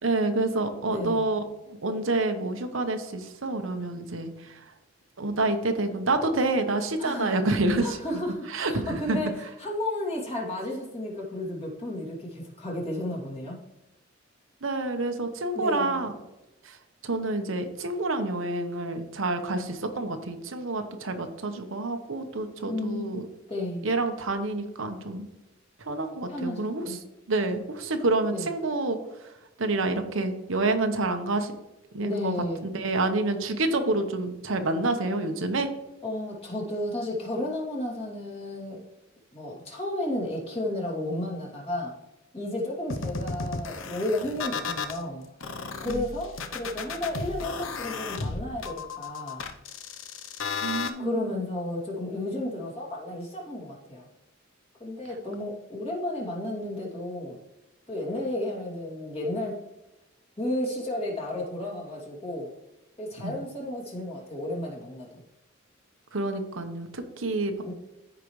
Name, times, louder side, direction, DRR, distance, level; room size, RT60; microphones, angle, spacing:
voice 1, 0.0-4.6 5.2-8.0 8.5-9.2 14.6-16.1 16.6-16.8 17.0-23.3 23.8-25.3 25.9-27.0 27.3-29.0 29.6-31.5 31.9-32.3 32.6-35.7 45.8-46.1 50.6-51.4 63.2-63.3 66.1-67.7, right 2 dB, 80° right, 6 dB, 1.0 m, -28 dB
voice 2, 0.9-1.3 7.0-7.4 7.8-9.3 9.6-13.6 15.5-16.0 22.7-23.2 23.5-23.8 26.3-27.0 28.3-28.5 32.0-32.6 36.0-38.8 39.3-41.9 42.3-45.2 45.8-49.4 51.0-54.1 54.8-57.4 57.9-59.6 60.4-62.5 63.0-65.2 67.6-67.7, left 1 dB, 30° left, -3 dB, 2.5 m, -33 dB
sound 1, 42.9-45.0 45.4-50.9, left 4 dB, 75° left, 0.7 m, -34 dB
13.5 x 5.0 x 3.2 m, 1.0 s
head